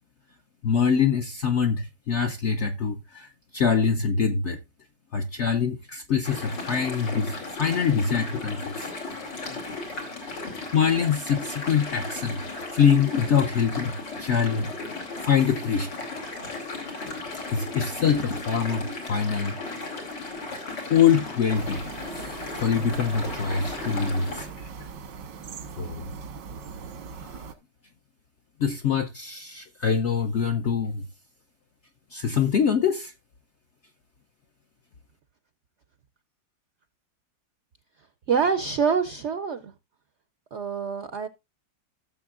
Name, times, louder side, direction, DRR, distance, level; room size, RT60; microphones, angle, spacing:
voice 1, 0.6-4.6 5.1-8.9 10.7-12.4 12.7-13.9 14.2-14.9 15.2-15.9 17.5-19.6 20.9-21.8 22.2-24.7 25.8-26.1 27.2-27.4 28.6-31.0 32.1-33.1, left 7 dB, 65° left, 0.7 m, -24 dB
sound 1, 6.2-24.5, left 3 dB, 90° left, 3.3 m, -36 dB
sound 2, 21.5-27.5, right 5 dB, 90° right, 1.9 m, -40 dB
voice 2, 38.3-39.7 40.5-41.3, right 6 dB, 70° right, 0.6 m, -25 dB
16.0 x 6.9 x 2.4 m
omnidirectional pair, 1.9 m